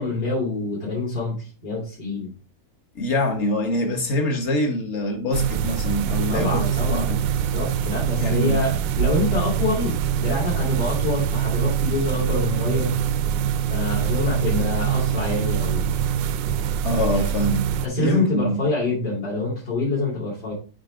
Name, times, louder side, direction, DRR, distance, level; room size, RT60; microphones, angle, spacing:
voice 1, 0.0-2.3 6.3-12.9 13.7-15.9 17.8-20.5, left 3 dB, 65° left, 3.7 m, -26 dB
voice 2, 2.9-7.2 8.2-8.6 16.8-17.7 18.0-18.6, left 1 dB, 45° left, 1.3 m, -25 dB
sound 1, 5.3-17.9, right 9 dB, 80° right, 1.3 m, -24 dB
7.9 x 3.7 x 5.0 m
omnidirectional pair, 2.0 m